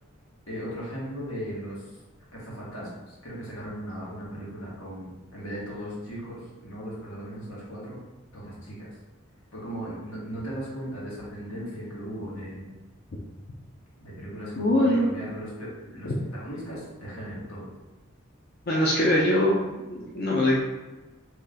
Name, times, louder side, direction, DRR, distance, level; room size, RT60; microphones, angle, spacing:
voice 1, 0.5-1.9 2.3-8.0 8.3-8.9 9.5-12.7 14.0-17.7, equal, 85° left, -6 dB, 1.5 m, -37 dB
voice 2, 14.6-15.1 18.7-19.6 19.9-20.6, left 1 dB, 50° left, -4 dB, 0.5 m, -22 dB
3.1 x 2.9 x 3.7 m, 1.1 s
head